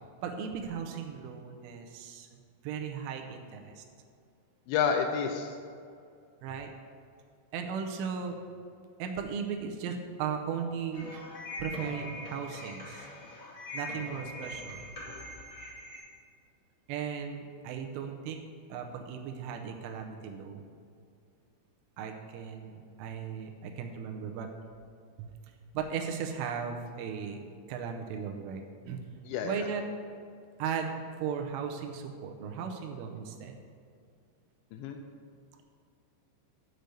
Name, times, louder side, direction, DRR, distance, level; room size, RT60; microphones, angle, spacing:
voice 1, 0.2-2.3 2.6-3.8 6.4-6.7 7.5-8.4 9.0-11.3 11.6-13.1 13.7-14.8 16.9-18.4 18.7-20.7 22.0-24.5 25.2-25.3 25.7-27.4 27.7-29.0 29.4-29.8 30.6-33.6, right 7 dB, 90° right, 3 dB, 3.3 m, -37 dB
voice 2, 4.7-5.6 29.3-29.7 34.7-35.0, left 6 dB, 85° left, 4 dB, 2.6 m, -29 dB
sound 1, 10.9-16.0, left 1 dB, 55° left, 1.4 m, -42 dB
6.8 x 6.6 x 7.7 m, 2.3 s
omnidirectional pair, 5.5 m